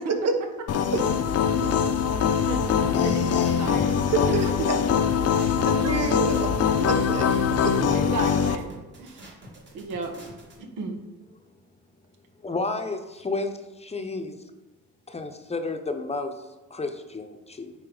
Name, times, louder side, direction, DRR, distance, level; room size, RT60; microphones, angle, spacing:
sound 1, 0.7-8.6, left 7 dB, 55° left, 0.6 m, -23 dB
voice 1, 1.6-1.9 4.0-4.8 5.4-6.5 6.8-7.3 7.6-7.7, right 4 dB, 55° right, 6 dB, 1.1 m, -28 dB
sound 2, 2.9-10.6, right 1 dB, 40° right, 2.2 m, -47 dB
voice 2, 3.0-4.0 5.8-6.0 7.9-8.7 9.0-9.3 9.7-10.1 10.6-11.0, right 3 dB, 90° right, 4 dB, 1.2 m, -34 dB
voice 3, 12.4-13.5 13.8-14.4 15.1-17.7, left 3 dB, 20° left, 6 dB, 0.7 m, -32 dB
9.4 x 4.1 x 3.9 m, 1.2 s
cardioid pair, 90°, 30 cm